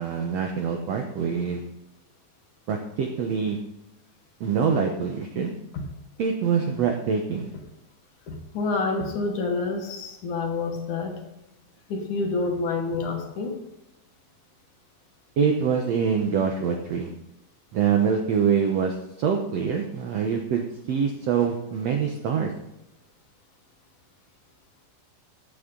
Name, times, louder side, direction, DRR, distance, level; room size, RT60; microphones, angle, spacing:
voice 1, 0.0-1.6 2.7-3.6 4.4-5.5 6.2-7.5 15.4-17.1 17.7-22.5, right 6 dB, 75° right, 3 dB, 1.5 m, -25 dB
voice 2, 8.3-11.2 11.9-13.6, left 3 dB, 65° left, 3 dB, 2.5 m, -28 dB
15.0 x 8.4 x 3.8 m, 0.95 s
omnidirectional pair, 4.1 m